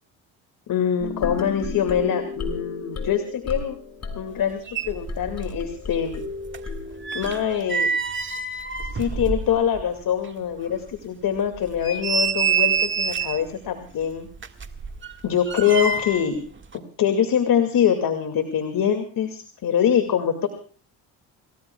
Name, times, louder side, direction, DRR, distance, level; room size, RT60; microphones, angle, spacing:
voice 1, 0.7-3.8 4.1-6.2 7.1-7.9 8.9-14.3 15.2-16.4 17.0-20.5, left 8 dB, 60° left, 7 dB, 2.4 m, -24 dB
sound 1, 1.0-7.4, left 4 dB, 40° left, 6.0 m, -34 dB
sound 2, 4.4-4.5 4.7-5.7 5.9-9.9 10.2-10.3 10.9-11.0 11.5-13.5 14.3-16.3 16.6-16.8, right 6 dB, 30° right, 1.8 m, -27 dB
28.0 x 19.0 x 2.4 m, 0.41 s
supercardioid pair, 80°, 39 cm